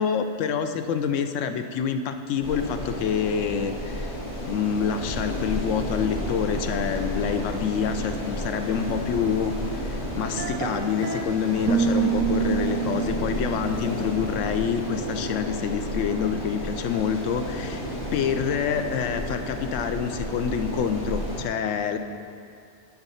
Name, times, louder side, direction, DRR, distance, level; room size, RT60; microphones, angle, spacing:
voice 1, 0.0-4.1 4.4-22.0, left 7 dB, 75° left, 8 dB, 0.9 m, -27 dB
sound 1, 2.4-21.4, equal, 55° left, 1.7 m, -32 dB
sound 2, 10.2-11.2 11.6-14.5, right 7 dB, 90° right, 1.1 m, -27 dB
12.0 x 4.0 x 5.5 m, 2.4 s
omnidirectional pair, 1.4 m